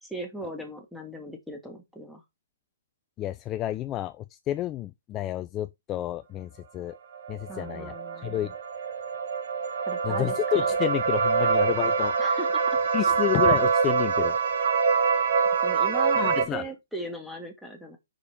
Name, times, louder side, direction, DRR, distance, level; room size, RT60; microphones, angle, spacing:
voice 1, 0.0-2.2 7.5-8.5 9.8-10.6 12.2-12.8 15.6-18.0, right 1 dB, ahead, 1.6 m, -38 dB
voice 2, 3.2-7.0 7.3-8.5 10.0-12.1 12.9-14.4 16.2-16.7, left 13 dB, 20° left, 0.3 m, -30 dB
sound 1, 7.1-16.4, right 5 dB, 60° right, 1.6 m, -25 dB
5.0 x 4.8 x 4.5 m
hypercardioid pair, 145°, 0 cm